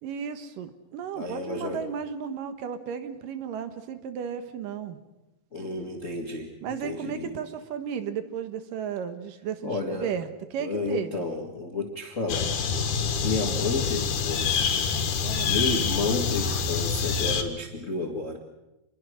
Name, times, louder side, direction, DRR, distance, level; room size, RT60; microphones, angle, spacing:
voice 1, 0.0-5.0 6.6-11.3 15.2-15.7, right 7 dB, 70° right, 10 dB, 2.8 m, -34 dB
voice 2, 1.1-1.8 5.5-7.3 9.6-10.1 10.6-12.5 13.2-14.7 15.5-18.4, left 3 dB, 35° left, 3 dB, 1.4 m, -31 dB
sound 1, 12.3-17.4, left 6 dB, 65° left, 2.9 m, -26 dB
26.5 x 21.5 x 6.4 m, 1.0 s
omnidirectional pair, 4.2 m